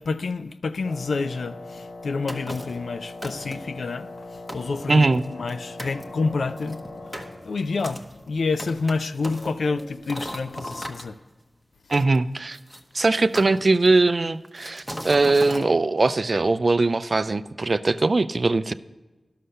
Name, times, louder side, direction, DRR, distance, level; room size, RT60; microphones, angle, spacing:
voice 1, 0.0-4.1 4.5-5.1 5.4-6.8 7.4-8.0 8.3-11.2, left 4 dB, 85° left, 0.4 m, -28 dB
Wind instrument woodwind instrument, 0.8-7.5, left 2 dB, 65° left, 1.1 m, -40 dB
sound 1, 2.3-2.8 3.2-3.8 4.2-4.3 4.5-5.5 5.8-6.0 6.6-11.0 11.9-12.8 13.4-14.1 14.6-15.7, equal, 5° left, 1.1 m, -37 dB
voice 2, 4.9-5.2 11.9-12.6 12.9-18.7, right 3 dB, 50° right, 0.4 m, -21 dB
sound 2, 5.9-10.9, left 1 dB, 30° left, 0.9 m, -45 dB
11.5 x 6.6 x 5.5 m
wide cardioid pair, 60°, 0 cm